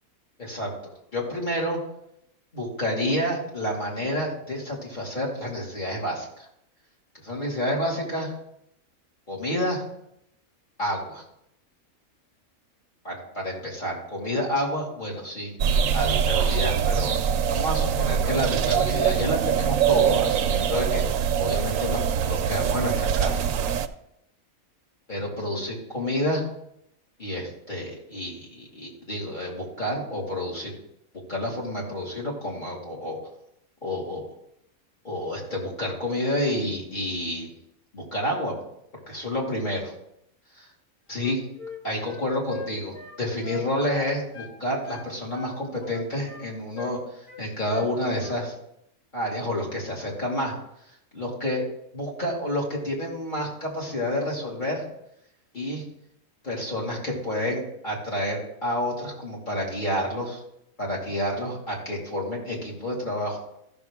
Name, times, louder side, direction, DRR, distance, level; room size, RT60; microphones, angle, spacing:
voice 1, 0.4-0.7 1.1-1.8 2.5-6.5 7.2-8.3 9.3-9.8 10.8-11.2 13.0-17.1 17.5-23.5 25.1-26.5 27.2-30.7 31.3-33.2 33.8-34.3 35.0-37.5 37.9-38.5 39.1-39.9 40.6-40.7 41.1-41.4 41.8-48.5 49.1-50.6 51.1-51.6 51.9-54.8 55.5-55.8 56.4-60.4 60.8-63.4, left 1 dB, 35° left, -4 dB, 2.6 m, -29 dB
sound 1, 15.6-23.9, right 8 dB, 75° right, 1.0 m, -23 dB
Wind instrument woodwind instrument, 41.1-44.6 44.8-46.5 46.7-47.0 47.3-47.9 48.2-48.4, left 3 dB, 70° left, 1.8 m, -41 dB
14.0 x 6.4 x 3.6 m, 0.78 s
omnidirectional pair, 1.5 m